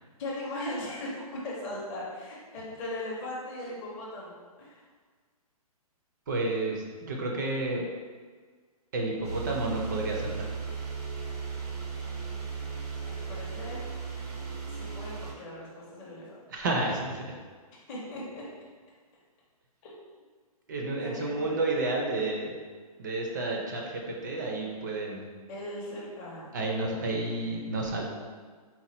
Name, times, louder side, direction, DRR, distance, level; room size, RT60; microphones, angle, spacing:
voice 1, 0.2-4.8 13.0-13.8 14.7-16.4 17.9-18.4 19.8-19.9 21.0-21.6 25.5-26.6, left 1 dB, 15° left, -6 dB, 0.6 m, -38 dB
voice 2, 6.3-7.9 8.9-10.5 16.5-17.4 20.7-22.5 23.0-25.3 26.5-28.1, right 2 dB, 30° right, 0 dB, 0.5 m, -31 dB
sound 1, 9.2-15.3, right 5 dB, 90° right, 0.9 m, -36 dB
4.2 x 2.1 x 4.0 m, 1.6 s
hypercardioid pair, 170°, 19 cm